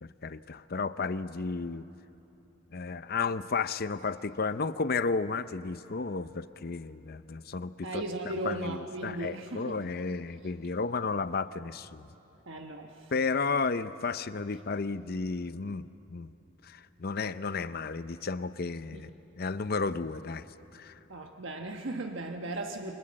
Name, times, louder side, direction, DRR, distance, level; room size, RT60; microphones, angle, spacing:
voice 1, 0.0-1.9 2.7-12.1 13.1-16.3 16.6-19.1 19.4-20.5 20.7-21.0, left 4 dB, 50° left, 13 dB, 0.6 m, -33 dB
voice 2, 7.8-9.8 12.5-13.1 18.9-19.0 21.1-22.9, right 2 dB, 70° right, 3 dB, 1.2 m, -37 dB
29.0 x 24.0 x 7.6 m, 2.9 s
head